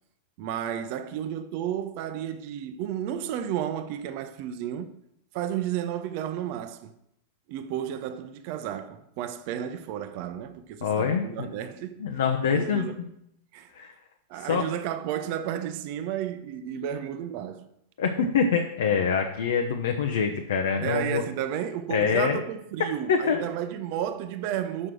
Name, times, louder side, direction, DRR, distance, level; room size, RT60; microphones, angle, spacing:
voice 1, 0.4-4.9 5.3-6.9 7.5-12.0 12.5-13.1 13.5-13.9 14.3-17.6 20.8-24.9, right 10 dB, 45° right, 0.6 m, -32 dB
voice 2, 10.8-11.5 12.0-12.9 13.7-13.9 14.4-14.7 18.0-21.2 21.9-22.4 23.1-23.5, left 6 dB, 60° left, 0.8 m, -25 dB
6.5 x 6.1 x 6.0 m
figure-of-eight pair, 90°, 0 cm